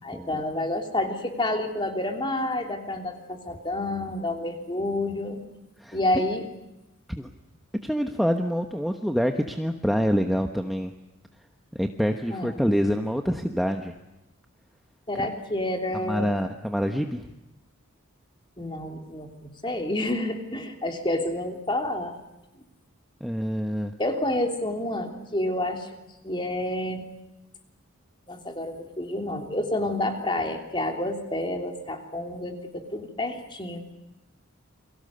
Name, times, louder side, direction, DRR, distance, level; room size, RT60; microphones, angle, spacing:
voice 1, 0.0-5.4 5.9-6.4 12.3-12.6 15.1-16.3 18.6-22.2 24.0-25.9 26.2-27.0 28.3-33.8, left 1 dB, 20° left, 4 dB, 3.2 m, -29 dB
voice 2, 7.8-10.9 11.8-14.0 15.1-15.3 16.1-17.3 23.2-23.9, equal, ahead, 4 dB, 1.1 m, -26 dB
29.5 x 23.5 x 6.7 m, 0.96 s
head